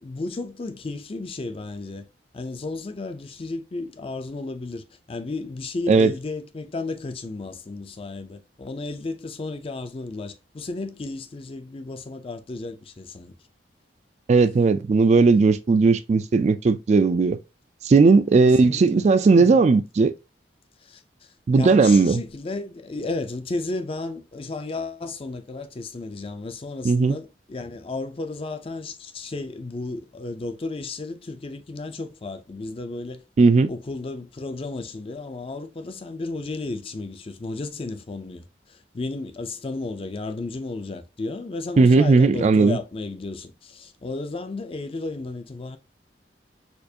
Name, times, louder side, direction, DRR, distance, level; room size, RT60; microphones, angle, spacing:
voice 1, 0.0-2.0 2.3-13.4 18.4-19.1 19.4-19.6 20.8-21.0 21.5-33.2 33.7-45.8, left 3 dB, 30° left, 0.4 m, -33 dB
voice 2, 14.3-17.4 17.8-20.1 21.5-22.2 26.8-27.2 33.4-33.7 41.8-42.8, right 4 dB, 40° right, 0.3 m, -17 dB
4.4 x 2.4 x 2.7 m
head